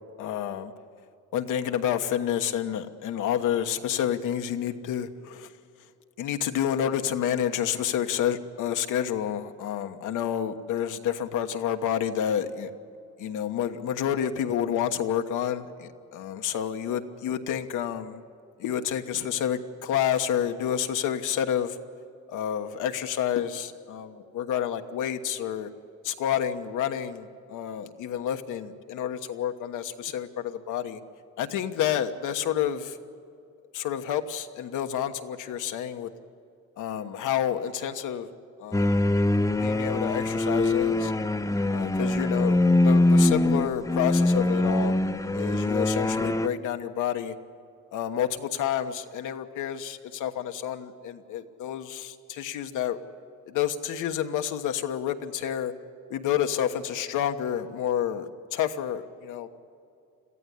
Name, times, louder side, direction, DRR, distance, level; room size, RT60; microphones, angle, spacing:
voice 1, 0.2-0.7 1.3-5.5 6.2-12.7 13.2-18.2 18.6-21.8 22.3-25.7 26.0-31.0 31.4-33.0 33.7-36.1 36.8-38.3 38.6-39.0 39.6-41.1 41.7-44.9 45.3-47.3 47.9-53.0 53.5-55.7 56.1-59.5, left 9 dB, 85° left, 7 dB, 1.3 m, -29 dB
sound 1, 38.7-46.5, left 2 dB, 10° left, 0.7 m, -23 dB
22.5 x 14.5 x 9.9 m, 2.5 s
cardioid pair, 90°, 30 cm